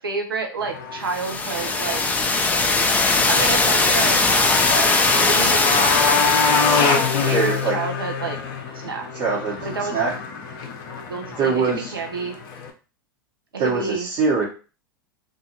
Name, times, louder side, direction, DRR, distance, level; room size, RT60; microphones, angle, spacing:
voice 1, 0.0-2.1 3.3-4.9 5.2-6.1 7.3-8.4 8.8-9.1 9.6-10.0 11.1-12.3 13.5-14.1, right 4 dB, 90° right, 3 dB, 0.7 m, -29 dB
Motorcycle, 0.6-12.7, left 5 dB, 50° left, 0.7 m, -26 dB
sound 1, 1.1-7.6, left 3 dB, 15° left, 0.4 m, -20 dB
voice 2, 7.3-7.8 9.1-9.6 9.9-10.1 11.4-11.9 13.6-14.4, right 4 dB, 45° right, -6 dB, 1.2 m, -22 dB
2.6 x 2.5 x 2.9 m, 0.34 s
hypercardioid pair, 95°, 12 cm